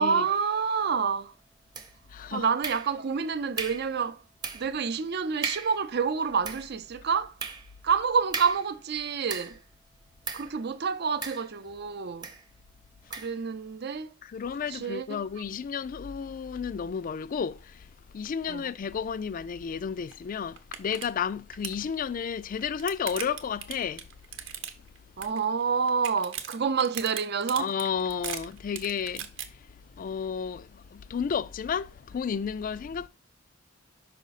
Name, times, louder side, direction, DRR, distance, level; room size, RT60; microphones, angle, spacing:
voice 1, 0.0-1.3 2.3-4.2 4.5-7.4 7.8-9.6 10.3-12.3 13.2-14.1 14.7-15.2 18.5-18.7 25.2-27.7, right 6 dB, 55° right, 0.5 m, -28 dB
sound 1, 1.7-2.2 2.6-3.2 3.6-3.9 4.4-4.8 5.1-5.2 5.4-5.8 6.3-9.7 10.2-10.6 11.2-11.8 12.2-12.5 13.1-13.4, right 4 dB, 20° right, 0.8 m, -37 dB
voice 2, 2.1-2.5 14.2-24.1 27.6-33.1, left 6 dB, 45° left, 0.3 m, -32 dB
sound 2, 20.1-20.2 20.6-21.1 21.3-21.8 22.4-25.0 25.2-25.6 25.9-29.5, right 9 dB, 80° right, 0.9 m, -37 dB
5.6 x 5.1 x 4.1 m
head